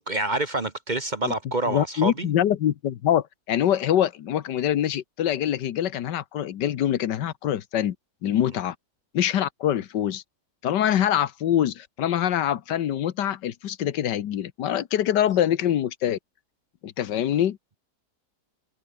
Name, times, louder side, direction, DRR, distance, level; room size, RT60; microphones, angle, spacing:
voice 1, 0.0-2.3, right 2 dB, 30° right, 1.1 m, -27 dB
voice 2, 1.7-7.9 8.2-8.7 9.1-10.2 10.6-16.2 16.8-17.6, left 11 dB, 90° left, 1.6 m, -24 dB
omnidirectional pair, 1.8 m